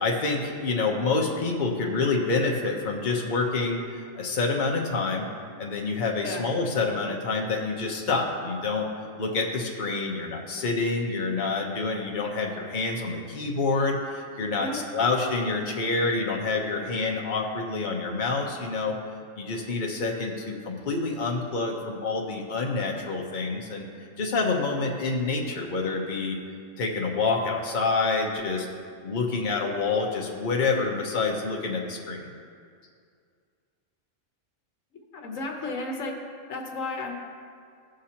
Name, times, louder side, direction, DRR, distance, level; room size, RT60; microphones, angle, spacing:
voice 1, 0.0-5.3 5.6-8.9 9.2-19.0 19.4-23.9 24.2-26.4 26.8-28.7 29.0-32.2, left 3 dB, 40° left, -1 dB, 1.0 m, -27 dB
voice 2, 35.1-36.2 36.5-37.1, left 2 dB, 80° left, 1 dB, 1.4 m, -33 dB
16.0 x 6.4 x 2.9 m, 2.2 s
omnidirectional pair, 1.3 m